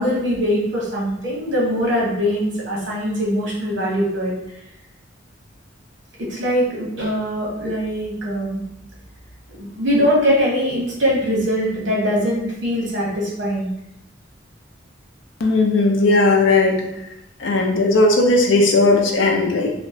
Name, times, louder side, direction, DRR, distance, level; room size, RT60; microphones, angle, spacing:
voice 1, 0.0-4.3 6.2-8.6 9.5-13.7, equal, 75° right, -4 dB, 1.0 m, -22 dB
voice 2, 15.4-16.8 17.4-19.7, left 2 dB, 75° left, 2 dB, 0.5 m, -16 dB
2.8 x 2.1 x 2.6 m, 0.84 s
head